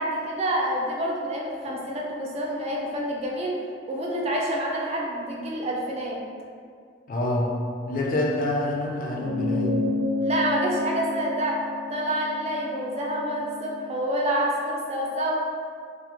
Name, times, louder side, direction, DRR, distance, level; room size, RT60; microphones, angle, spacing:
voice 1, 0.0-3.6 3.9-6.2 10.2-11.6 11.9-15.4, right 1 dB, 35° right, -2 dB, 0.3 m, -27 dB
voice 2, 7.1-7.5 7.9-9.7, left 1 dB, 45° left, -2 dB, 0.4 m, -26 dB
sound 1, 9.2-13.9, left 3 dB, 85° left, 0.7 m, -30 dB
2.4 x 2.0 x 2.9 m, 2.2 s
head